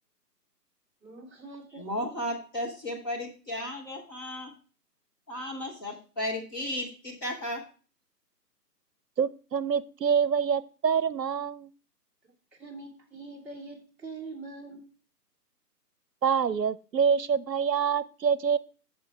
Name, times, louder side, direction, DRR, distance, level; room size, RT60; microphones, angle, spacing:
voice 1, 1.0-2.1 12.2-14.8, right 3 dB, 5° right, -7 dB, 2.0 m, -44 dB
voice 2, 1.8-4.5 5.3-7.6, left 1 dB, 15° left, -3 dB, 1.0 m, -34 dB
voice 3, 9.2-11.7 16.2-18.6, right 7 dB, 85° right, 18 dB, 0.7 m, -26 dB
9.6 x 7.0 x 3.3 m, 0.37 s
figure-of-eight pair, 145°, 49 cm